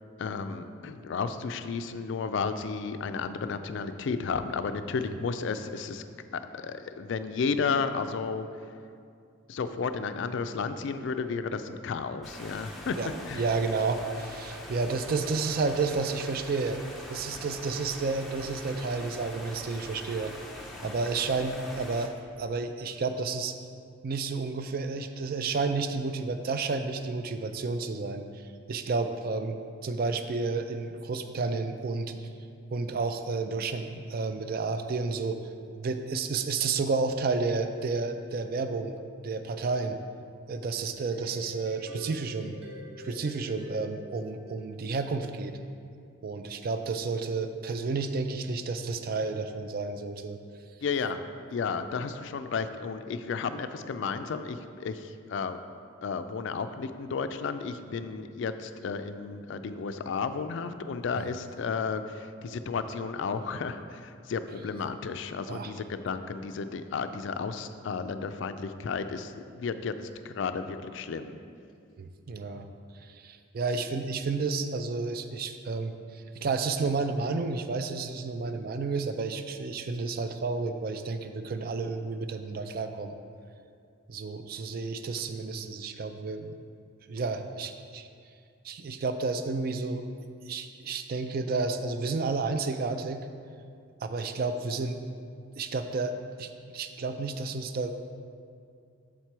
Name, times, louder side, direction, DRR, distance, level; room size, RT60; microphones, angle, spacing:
voice 1, 0.2-6.0 6.3-8.5 9.5-13.0 13.3-13.4 14.9-15.0 50.8-51.2 51.5-55.6 56.0-69.9 70.2-71.4, left 5 dB, 60° left, 10 dB, 0.3 m, -33 dB
sound 1, 12.2-22.1, left 1 dB, ahead, 0.6 m, -43 dB
voice 2, 13.3-16.8 17.1-20.3 20.8-22.1 22.4-23.5 24.0-32.3 32.7-35.5 35.8-38.9 39.2-40.0 40.5-42.6 43.0-45.6 46.2-50.4 61.1-61.2 65.5-65.7 72.0-72.7 72.9-83.1 84.1-86.5 87.1-88.1 88.6-90.0 90.5-93.3 94.0-95.0 95.6-97.9, right 4 dB, 45° right, 8 dB, 0.4 m, -31 dB
sound 2, 41.1-45.3, left 2 dB, 80° right, 1.5 m, -47 dB
7.3 x 4.4 x 4.6 m, 2.3 s
head